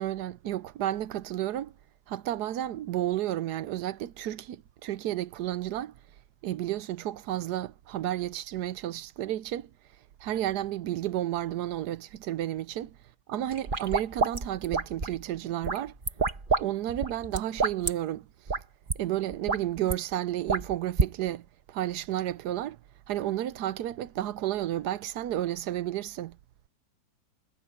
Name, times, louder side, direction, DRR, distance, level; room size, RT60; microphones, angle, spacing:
voice 1, 0.0-1.7 2.1-5.9 6.4-9.7 10.2-13.0 13.3-15.9 16.6-18.3 19.0-22.8 23.1-26.4, right 13 dB, 70° right, 1.2 m, -32 dB
sound 1, 13.5-15.2 15.6-16.6 16.9-17.9 18.5-18.6 18.9-19.0 19.3-19.9 20.5-21.1, right 4 dB, 30° right, 1.6 m, -28 dB
omnidirectional pair, 2.0 m